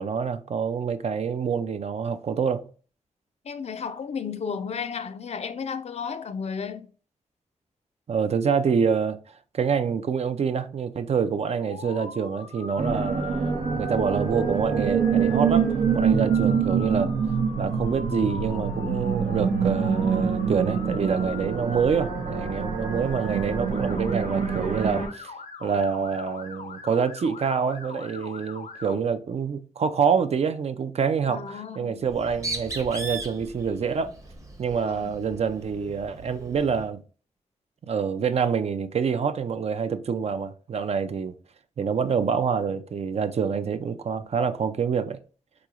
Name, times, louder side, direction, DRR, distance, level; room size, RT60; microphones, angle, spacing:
voice 1, 0.0-2.7 8.1-9.2 9.5-15.7 15.9-17.1 17.6-25.3 25.6-34.1 34.6-37.0 37.9-41.3 41.8-45.2, right 6 dB, 55° right, 0.4 m, -26 dB
voice 2, 3.4-6.9 31.3-32.0 34.9-35.3, left 6 dB, 55° left, 0.4 m, -33 dB
Motor vehicle (road) / Siren, 11.6-29.0, left 4 dB, 90° left, 0.7 m, -42 dB
sound 1, 12.8-25.1, right 6 dB, 90° right, 0.6 m, -25 dB
Bird, 32.0-36.9, right 3 dB, 25° right, 0.7 m, -38 dB
3.7 x 3.0 x 2.3 m
cardioid pair, 70°, 13 cm